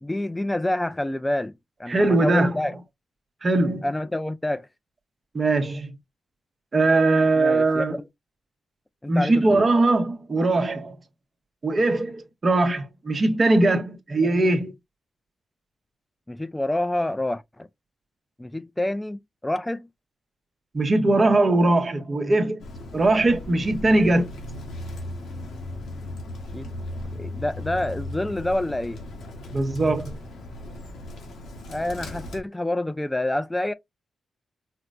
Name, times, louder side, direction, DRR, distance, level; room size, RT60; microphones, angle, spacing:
voice 1, 0.0-1.5 1.8-2.8 3.8-4.7 7.4-8.0 9.0-9.7 16.3-17.7 18.4-19.9 26.5-26.7 27.1-29.0 31.7-33.7, left 1 dB, 15° left, 0.3 m, -27 dB
voice 2, 1.9-2.6 3.4-3.9 5.3-5.9 6.7-8.0 9.1-11.0 11.6-14.7 20.7-22.6 22.9-24.3 29.5-30.2, right 2 dB, 40° right, 0.8 m, -21 dB
Bird, 22.6-32.4, left 1 dB, 80° left, 1.0 m, -37 dB
4.3 x 2.0 x 2.5 m
supercardioid pair, 55°, 0 cm